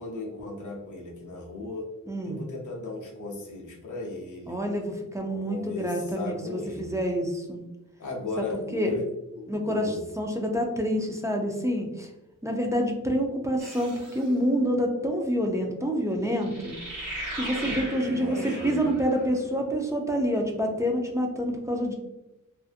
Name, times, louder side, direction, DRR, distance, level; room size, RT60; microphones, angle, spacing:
voice 1, 0.0-1.9 2.2-4.6 5.3-7.0 8.0-9.1 9.4-10.0 17.4-17.5 18.0-18.9, left 2 dB, 65° left, -1 dB, 0.6 m, -36 dB
voice 2, 2.1-2.4 4.5-7.6 8.7-8.9 9.5-12.1 12.4-16.8 17.3-21.9, equal, 10° right, 1 dB, 0.3 m, -27 dB
sound 1, 13.6-14.3 16.4-19.3, right 1 dB, 70° right, 1.0 m, -37 dB
2.6 x 2.5 x 2.4 m, 0.96 s
wide cardioid pair, 120°, 33 cm